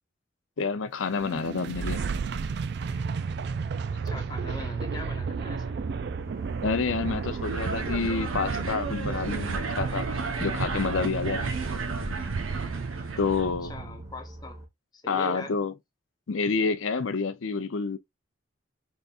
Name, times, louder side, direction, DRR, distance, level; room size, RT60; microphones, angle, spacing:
voice 1, 0.6-2.0 6.6-10.1 10.4-11.5 13.2-13.7 15.1-15.7 16.3-18.0, left 4 dB, 80° left, 0.6 m, -28 dB
sound 1, 1.0-14.2, right 5 dB, 55° right, 0.3 m, -33 dB
sound 2, 2.9-14.7, right 1 dB, 15° right, 1.3 m, -44 dB
voice 2, 4.0-5.8 13.6-14.6 14.9-15.6, left 2 dB, 20° left, 0.8 m, -41 dB
sound 3, 7.4-13.5, right 3 dB, 85° right, 0.9 m, -33 dB
4.0 x 3.5 x 2.5 m
head